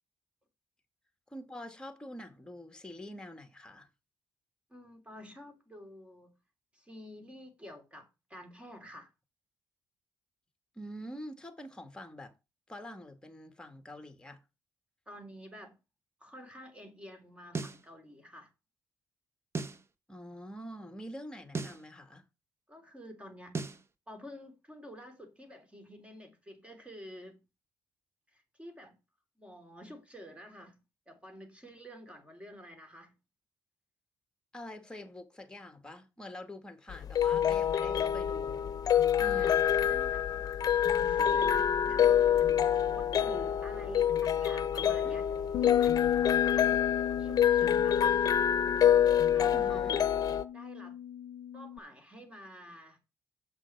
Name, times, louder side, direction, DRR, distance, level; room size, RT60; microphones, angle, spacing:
voice 1, 1.3-3.9 10.7-12.3 12.7-14.4 20.1-22.2 34.5-38.7 39.2-39.7 45.0-45.2 49.5-50.0, left 1 dB, 10° left, 2.1 m, -45 dB
voice 2, 4.7-6.4 6.7-9.1 15.1-15.8 16.2-18.5 22.7-23.6 24.1-27.4 28.3-29.0 29.4-33.2 39.2-40.3 40.9-45.3 45.6-46.0 46.5-48.2 49.3-50.1 50.5-51.0 51.5-53.0, equal, 15° right, 3.3 m, -49 dB
sound 1, 17.5-17.8 19.5-19.8 21.5-21.8 23.5-23.8, right 4 dB, 35° right, 1.1 m, -36 dB
sound 2, 36.9-50.5, left 9 dB, 55° left, 0.8 m, -26 dB
Bass guitar, 45.5-51.8, left 10 dB, 80° left, 0.5 m, -36 dB
7.9 x 6.3 x 6.1 m
cardioid pair, 80°, 8 cm